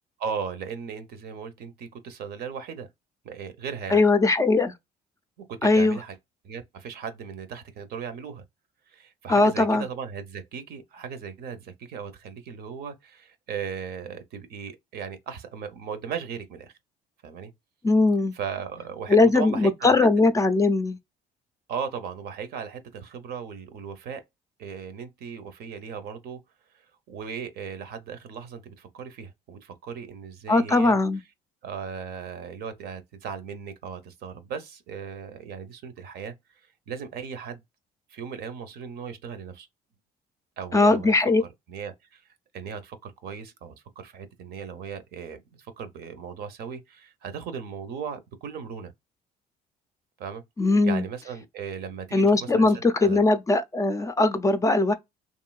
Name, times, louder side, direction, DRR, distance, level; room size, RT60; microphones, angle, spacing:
voice 1, 0.2-2.9 3.2-4.0 5.4-6.2 6.4-8.4 8.9-16.7 17.2-17.5 18.3-20.1 21.7-24.2 24.6-26.4 27.1-31.0 31.6-36.3 36.9-37.6 38.1-39.7 40.6-41.1 41.4-42.2 42.5-45.4 45.8-48.9 50.2-50.4 50.8-53.2, right 6 dB, 70° right, 0.7 m, -37 dB
voice 2, 3.9-4.7 5.6-6.0 9.3-9.9 17.8-18.3 19.1-21.0 30.5-31.2 40.7-41.4 50.6-51.0 52.1-54.9, left 3 dB, 20° left, 0.4 m, -20 dB
3.1 x 2.6 x 2.3 m
cardioid pair, 110°, 17 cm